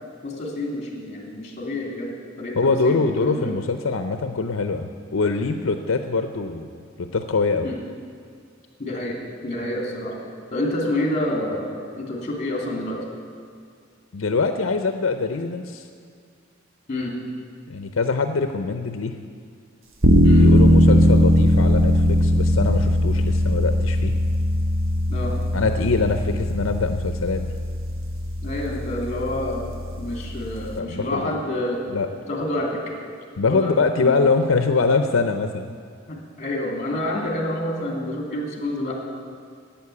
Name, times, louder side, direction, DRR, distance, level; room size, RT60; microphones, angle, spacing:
voice 1, 0.2-3.5 7.6-7.8 8.8-10.2 10.5-13.0 16.9-17.1 20.2-20.5 25.1-25.3 28.4-31.8 32.3-32.8 33.4-34.3 36.1-38.9, left 1 dB, 35° left, 0 dB, 2.7 m, -28 dB
voice 2, 2.6-6.7 7.0-7.7 14.1-15.9 17.7-19.2 20.4-24.2 25.5-27.5 30.7-31.3 31.9-32.1 33.4-35.7, left 4 dB, 80° left, 7 dB, 0.6 m, -23 dB
sound 1, 20.0-30.8, left 1 dB, 80° right, 1.2 m, -19 dB
11.5 x 9.1 x 8.4 m, 2.2 s
head